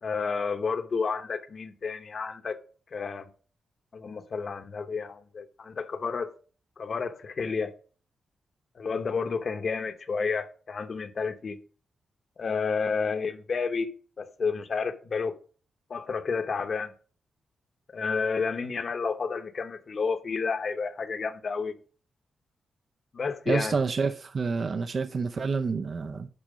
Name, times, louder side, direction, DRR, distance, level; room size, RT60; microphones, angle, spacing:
voice 1, 0.0-2.6 2.9-3.3 3.9-6.3 6.8-7.7 8.8-11.6 12.4-13.9 14.2-15.4 15.9-16.9 17.9-21.7 23.1-23.7, left 5 dB, 50° left, 0.9 m, -30 dB
voice 2, 23.5-26.3, right 4 dB, 50° right, 0.6 m, -28 dB
11.0 x 4.4 x 5.1 m
cardioid pair, 110°, 0 cm